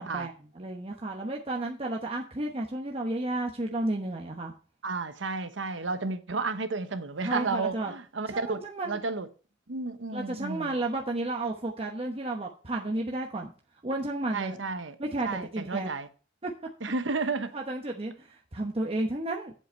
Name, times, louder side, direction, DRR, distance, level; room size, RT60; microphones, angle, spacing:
voice 1, 0.0-4.5 7.2-7.9 8.3-9.0 10.1-13.5 13.8-14.6 15.0-15.9 16.4-16.5 17.5-19.5, right 2 dB, 30° right, 1.0 m, -32 dB
voice 2, 4.8-9.3 9.7-10.8 14.3-14.9 15.2-16.1 16.8-17.5, right 3 dB, 90° right, 1.0 m, -32 dB
7.9 x 7.8 x 4.4 m
head